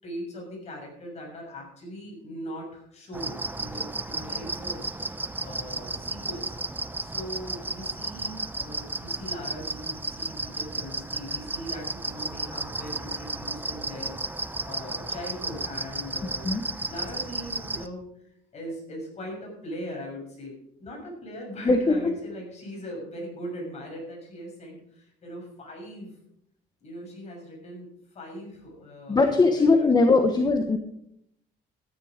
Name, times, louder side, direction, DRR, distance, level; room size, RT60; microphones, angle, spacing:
voice 1, 0.0-6.5 7.0-14.2 14.6-16.6 16.9-26.2 26.8-30.2, equal, 40° left, 0 dB, 6.6 m, -40 dB
sound 1, 3.1-17.9, right 2 dB, 10° right, 0.8 m, -33 dB
voice 2, 21.6-22.1 29.1-30.8, left 3 dB, 25° left, 5 dB, 1.2 m, -20 dB
13.0 x 10.0 x 5.1 m, 0.74 s
cardioid pair, 110°, 17 cm